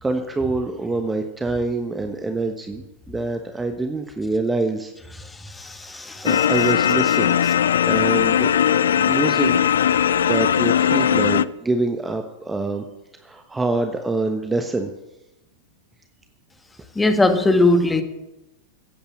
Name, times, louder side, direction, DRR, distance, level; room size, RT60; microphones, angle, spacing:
voice 1, 0.0-4.9 6.2-7.4 7.8-8.5 9.1-9.6 10.2-12.9 13.2-14.9, right 3 dB, 10° right, 1.1 m, -25 dB
voice 2, 5.4-6.4 16.9-18.0, left 2 dB, 10° left, 1.7 m, -19 dB
sound 1, 6.2-11.4, left 9 dB, 65° left, 0.4 m, -19 dB
15.5 x 8.7 x 7.5 m
figure-of-eight pair, 90°, 0 cm